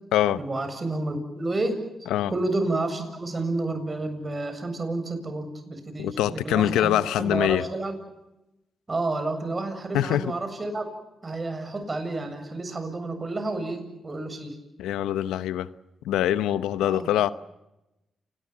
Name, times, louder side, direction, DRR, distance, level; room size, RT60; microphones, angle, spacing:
voice 1, 0.4-7.9 8.9-10.9 11.2-14.6 16.8-17.1, right 2 dB, 35° right, 7.4 m, -30 dB
voice 2, 6.0-7.6 9.9-10.3 14.8-15.7 16.0-17.3, left 12 dB, 90° left, 0.8 m, -24 dB
29.5 x 20.5 x 7.4 m
supercardioid pair, 55°, 0 cm